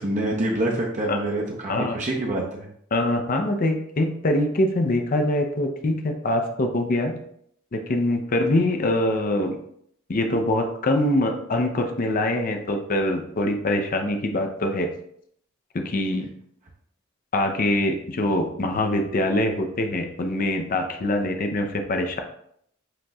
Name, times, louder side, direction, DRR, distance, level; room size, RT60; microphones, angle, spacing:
voice 1, 0.0-2.7, right 1 dB, 35° right, -2 dB, 0.7 m, -26 dB
voice 2, 2.9-7.2 7.7-9.6 10.1-14.9 15.7-16.3 17.3-22.2, left 1 dB, 40° left, 5 dB, 0.5 m, -24 dB
7.7 x 2.9 x 2.3 m, 0.70 s
head